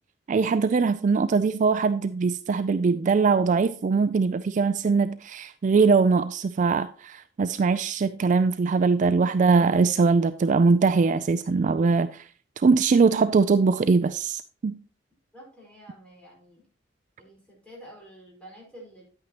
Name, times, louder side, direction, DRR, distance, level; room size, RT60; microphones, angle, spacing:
voice 1, 0.3-12.3 12.6-14.7, right 4 dB, 45° right, 0.3 m, -22 dB
voice 2, 15.3-16.6 17.2-19.0, right 1 dB, 5° left, 4.7 m, -48 dB
9.9 x 8.9 x 2.9 m
head